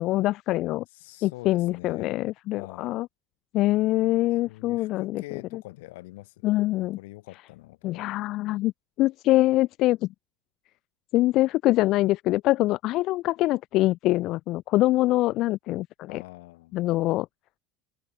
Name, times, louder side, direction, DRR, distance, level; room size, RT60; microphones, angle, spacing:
voice 1, 0.0-0.8 1.2-3.1 3.5-5.2 5.5-5.6 6.4-7.0 7.8-8.7 9.0-10.1 11.1-16.2 16.7-17.3, left 17 dB, 60° left, 0.4 m, -24 dB
voice 2, 0.9-2.2 2.6-3.0 4.5-8.1 16.1-16.9, left 20 dB, 85° left, 2.8 m, -45 dB
supercardioid pair, 110°, 0 cm